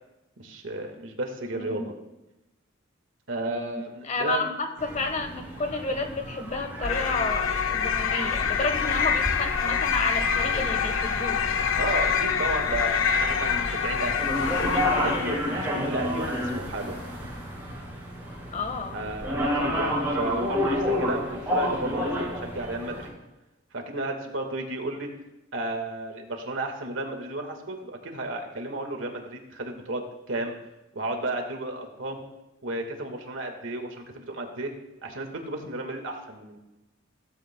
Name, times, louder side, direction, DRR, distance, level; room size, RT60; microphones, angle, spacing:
voice 1, 0.4-1.9 3.3-4.5 11.8-17.1 18.9-23.2 23.7-25.1 25.5-30.0 30.3-30.5 30.9-32.2 32.6-34.7 35.0-36.6, right 2 dB, 75° right, 3 dB, 1.7 m, -33 dB
voice 2, 1.5-1.8 3.5-11.4 18.5-19.0, left 3 dB, 40° left, 6 dB, 1.3 m, -31 dB
sound 1, 4.8-23.1, equal, 10° right, 4.9 m, -31 dB
sound 2, 6.8-15.4, left 7 dB, 85° left, 0.7 m, -26 dB
15.5 x 14.0 x 2.3 m, 0.99 s
head